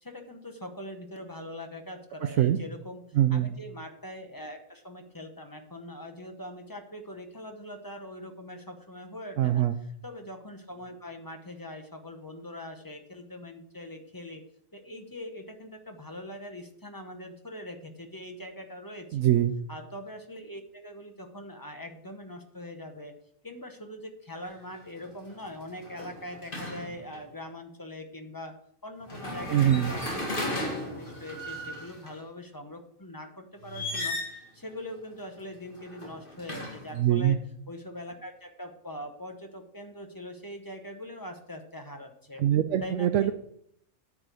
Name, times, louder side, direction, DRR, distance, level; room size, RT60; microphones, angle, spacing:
voice 1, 0.0-3.0 3.3-14.4 14.7-19.3 19.7-23.1 23.4-28.5 28.8-30.7 30.9-37.4 37.7-42.4 42.8-43.3, left 1 dB, 20° left, 5 dB, 0.9 m, -42 dB
voice 2, 3.2-3.5 9.4-9.8 19.1-19.6 29.5-29.9 37.0-37.4 42.4-43.3, right 11 dB, 85° right, 7 dB, 0.9 m, -23 dB
sound 1, 24.4-24.7 25.1-27.2 29.0-32.1 33.6-34.5 35.7-37.0, left 1 dB, 45° left, 2.1 m, -36 dB
9.6 x 4.9 x 6.8 m, 0.70 s
omnidirectional pair, 1.3 m